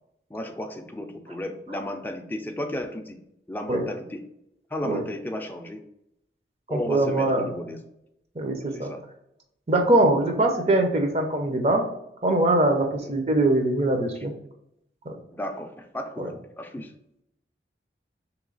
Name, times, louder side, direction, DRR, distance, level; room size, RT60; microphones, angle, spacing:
voice 1, 0.3-3.2 3.5-4.2 4.7-5.8 6.7-7.8 8.7-9.0 13.0-13.1 15.3-16.9, left 1 dB, 10° left, 4 dB, 0.4 m, -34 dB
voice 2, 6.7-7.5 8.4-8.9 9.7-11.8 12.2-14.3 15.1-15.2 16.2-16.3, right 1 dB, 35° right, 3 dB, 0.6 m, -22 dB
3.1 x 3.1 x 3.8 m, 0.81 s
head